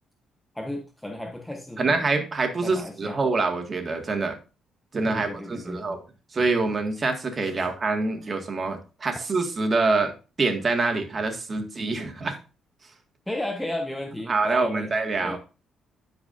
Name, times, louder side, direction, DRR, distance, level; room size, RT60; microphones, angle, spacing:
voice 1, 0.5-2.0 2.6-3.2 5.1-5.8 7.5-7.7 13.3-14.9 15.2-15.4, left 1 dB, 5° left, 1 dB, 1.0 m, -34 dB
voice 2, 1.8-4.4 4.9-6.0 6.3-10.1 10.4-12.4 14.3-15.4, right 3 dB, 35° right, 4 dB, 1.9 m, -25 dB
12.5 x 4.8 x 2.6 m, 0.33 s
cardioid pair, 90°, 0 cm